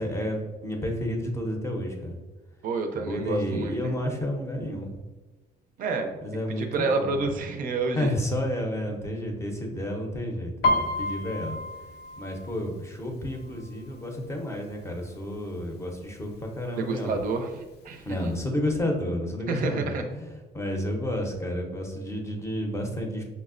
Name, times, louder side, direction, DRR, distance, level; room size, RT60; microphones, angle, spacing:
voice 1, 0.0-2.2 2.9-5.0 6.2-7.1 8.0-11.6 12.2-17.1 18.0-23.2, left 1 dB, 15° left, 2 dB, 0.6 m, -31 dB
voice 2, 2.6-3.9 5.8-6.1 6.5-8.2 16.8-18.3 19.5-20.0, right 3 dB, 55° right, 5 dB, 0.4 m, -29 dB
Piano, 10.6-14.3 14.6-15.0 15.4-16.0 16.6-16.7 16.9-18.0 18.3-18.4, left 2 dB, 75° left, 0.5 m, -30 dB
5.4 x 2.0 x 2.4 m, 1.2 s
cardioid pair, 110°, 17 cm